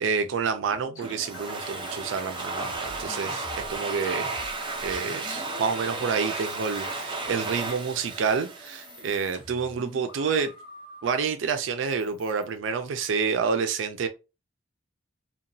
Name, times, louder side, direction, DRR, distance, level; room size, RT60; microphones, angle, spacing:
voice 1, 0.0-4.3 4.8-10.5 11.0-14.1, right 5 dB, 80° right, 0.4 m, -28 dB
sound 1, 0.6-7.1 7.4-8.1 8.5-11.2 11.9-13.1, left 2 dB, 85° left, 0.8 m, -46 dB
Domestic sounds home sounds, 1.0-9.5, right 3 dB, 25° right, 0.5 m, -34 dB
2.8 x 2.2 x 2.6 m
head